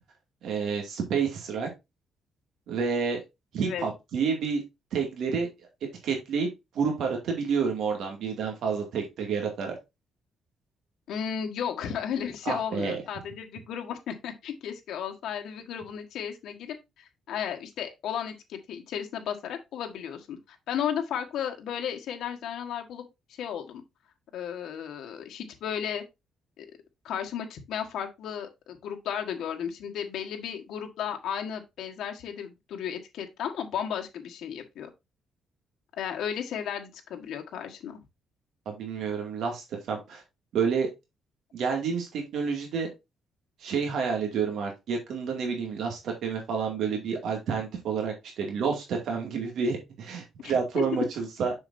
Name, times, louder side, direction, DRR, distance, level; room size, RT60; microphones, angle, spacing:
voice 1, 0.4-1.7 2.7-3.2 3.5-4.6 4.9-5.7 6.0-6.5 6.7-9.8 12.5-13.0 38.7-40.2 40.5-40.9 41.5-42.9 43.6-51.5, right 5 dB, 70° right, 2.3 m, -29 dB
voice 2, 11.1-16.8 17.3-23.1 23.4-23.8 24.3-26.0 26.6-26.7 27.0-34.9 36.0-38.0 50.4-50.8, left 8 dB, 75° left, 1.5 m, -34 dB
7.0 x 6.5 x 2.7 m
cardioid pair, 150°, 0 cm